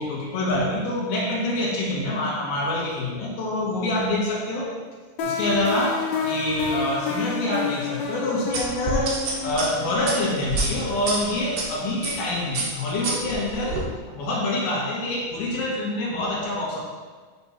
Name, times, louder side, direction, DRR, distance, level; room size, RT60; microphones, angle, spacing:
voice 1, 0.0-4.7 5.2-9.1 9.4-13.8 14.1-16.8, left 1 dB, 90° left, -3 dB, 3.4 m, -26 dB
sound 1, 5.2-12.0, left 4 dB, 75° left, 1.6 m, -30 dB
sound 2, 8.5-11.6 12.0-12.3 12.5-13.8, right 3 dB, 60° right, 1.7 m, -28 dB
6.4 x 6.0 x 4.3 m, 1.5 s
omnidirectional pair, 4.2 m